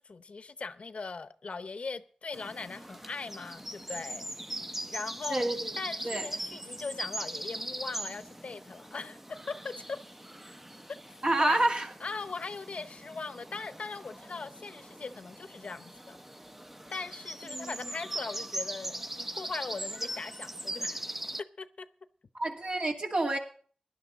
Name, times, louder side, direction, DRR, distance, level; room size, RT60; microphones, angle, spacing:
voice 1, 0.0-4.2 4.9-5.5 5.8-9.2 9.5-10.0 11.4-11.6 12.0-16.2 16.9-21.0 21.6-21.9, left 4 dB, 70° left, 0.7 m, -40 dB
sound 1, 2.3-21.4, right 1 dB, 15° right, 0.6 m, -40 dB
voice 2, 5.3-5.7 6.0-6.3 11.2-11.9 17.5-17.9 22.3-23.4, right 2 dB, 55° right, 2.4 m, -29 dB
17.0 x 11.0 x 3.8 m
wide cardioid pair, 60°, 2 cm